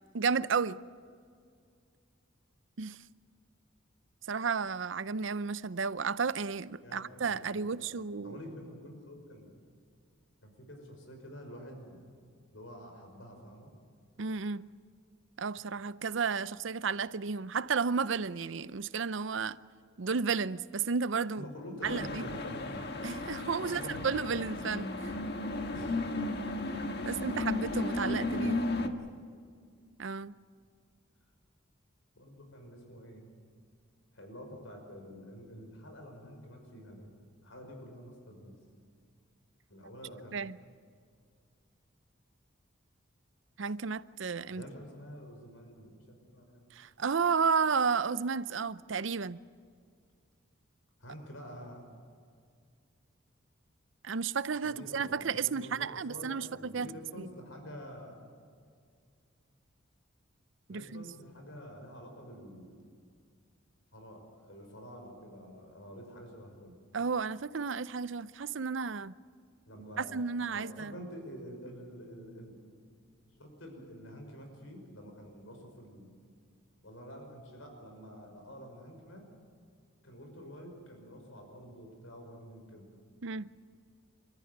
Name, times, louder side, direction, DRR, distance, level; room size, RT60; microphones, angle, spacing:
voice 1, 0.1-0.8 2.8-3.0 4.3-8.4 14.2-14.6 15.4-19.6 20.0-21.5 21.8-22.2 23.0-25.1 27.1-28.6 30.0-30.3 40.3-40.6 43.6-44.6 46.7-49.4 54.0-56.9 57.2-57.3 60.7-61.0 66.9-69.1 70.0-71.0 83.2-83.5, right 5 dB, 65° right, 0.6 m, -32 dB
voice 2, 6.8-7.9 8.2-9.5 10.4-12.0 12.5-13.7 21.4-22.8 23.6-24.1 25.7-26.0 27.0-27.3 28.0-29.2 32.2-33.3 34.1-37.1 37.4-38.5 39.7-40.4 44.5-46.7 51.0-51.8 54.6-58.2 60.7-62.8 63.9-66.8 69.7-72.7 73.4-76.2 76.8-79.3 80.0-82.9, equal, 75° left, 5.8 m, -48 dB
sound 1, 21.8-28.9, left 2 dB, 55° left, 1.6 m, -34 dB
29.5 x 14.0 x 9.5 m
head